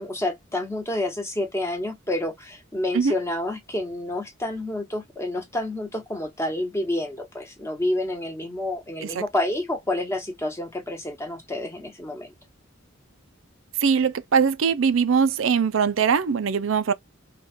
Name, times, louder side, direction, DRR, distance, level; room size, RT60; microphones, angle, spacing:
voice 1, 0.0-12.3, left 1 dB, 15° left, 1.1 m, -29 dB
voice 2, 13.8-16.9, right 6 dB, 70° right, 0.5 m, -21 dB
3.8 x 2.4 x 3.6 m
head